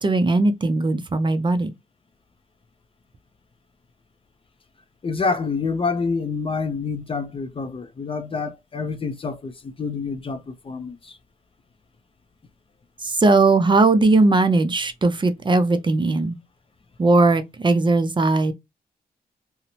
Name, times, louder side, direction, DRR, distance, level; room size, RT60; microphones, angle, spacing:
voice 1, 0.0-1.7 13.0-16.4 17.0-18.5, right 3 dB, 30° right, 0.4 m, -18 dB
voice 2, 5.0-11.2, left 4 dB, 35° left, 0.4 m, -27 dB
2.6 x 2.0 x 2.8 m
cardioid pair, 90°, 16 cm